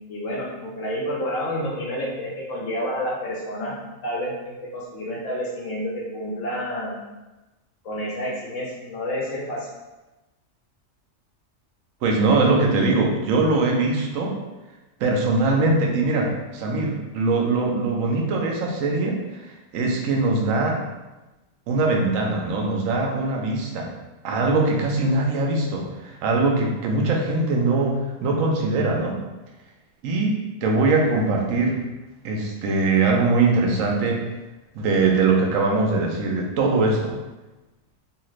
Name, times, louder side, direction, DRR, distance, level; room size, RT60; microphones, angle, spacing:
voice 1, 0.1-3.7 4.0-7.0 7.8-9.7, equal, 75° left, -4 dB, 0.9 m, -29 dB
voice 2, 12.0-14.3 15.0-19.5 19.7-20.8 21.7-23.9 24.2-29.2 30.0-31.8 32.2-34.2 34.7-37.2, right 3 dB, 85° right, 1 dB, 1.0 m, -22 dB
2.7 x 2.4 x 3.0 m, 1.1 s
omnidirectional pair, 1.4 m